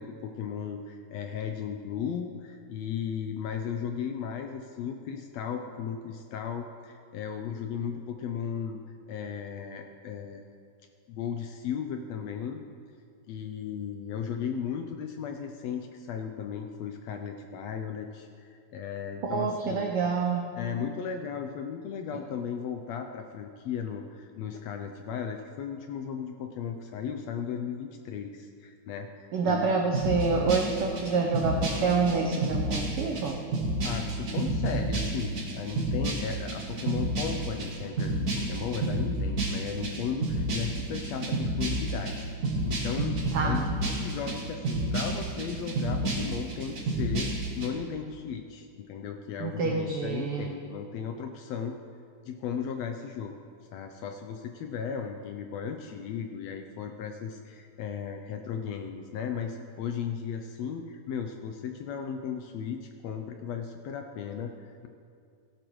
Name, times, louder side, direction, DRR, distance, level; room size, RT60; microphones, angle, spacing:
voice 1, 0.0-8.8 9.1-10.5 11.1-12.6 13.3-19.9 20.6-29.8 33.8-42.2 42.6-51.8 52.2-53.3 53.7-64.9, left 7 dB, 75° left, 5 dB, 1.6 m, -36 dB
voice 2, 19.2-20.5 29.3-33.4 43.3-43.7 49.4-50.6, right 4 dB, 80° right, 2 dB, 1.2 m, -27 dB
sound 1, 29.9-47.7, right 2 dB, 40° right, 1.4 m, -30 dB
16.5 x 11.5 x 3.1 m, 2.3 s
omnidirectional pair, 3.5 m